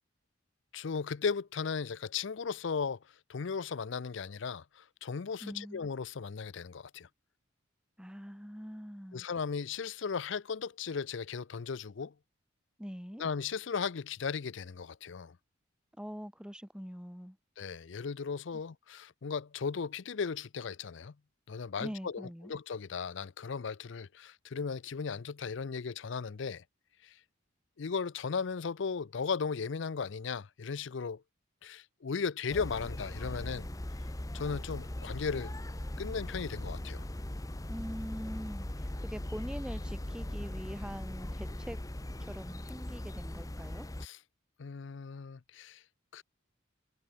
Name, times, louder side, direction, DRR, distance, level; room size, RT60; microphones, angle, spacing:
voice 1, 0.7-3.0 3.3-7.1 9.1-12.1 13.2-15.4 17.6-21.1 21.5-26.6 27.0-27.2 27.8-31.2 31.6-33.7 34.3-35.5 36.0-37.0 44.0-44.2 44.6-45.8 46.1-46.2, left 5 dB, 65° left, 0.5 m, -36 dB
voice 2, 5.4-5.8 8.0-9.3 12.8-13.2 16.0-17.4 21.8-22.5 37.7-41.8 42.2-43.9, equal, 5° right, 3.6 m, -43 dB
sound 1, 32.5-44.1, left 1 dB, 15° left, 0.9 m, -39 dB
head